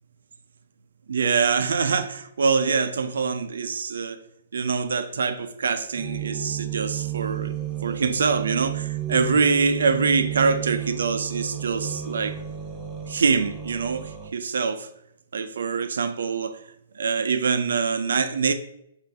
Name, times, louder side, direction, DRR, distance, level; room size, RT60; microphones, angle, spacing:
voice 1, 1.1-4.2 4.5-7.5 7.8-12.4 13.1-14.9 15.3-16.6 16.9-18.5, right 5 dB, 90° right, 0.3 m, -24 dB
sound 1, 6.0-14.3, right 10 dB, 15° right, 0.3 m, -32 dB
5.0 x 2.4 x 3.3 m
hypercardioid pair, 175°, 0 cm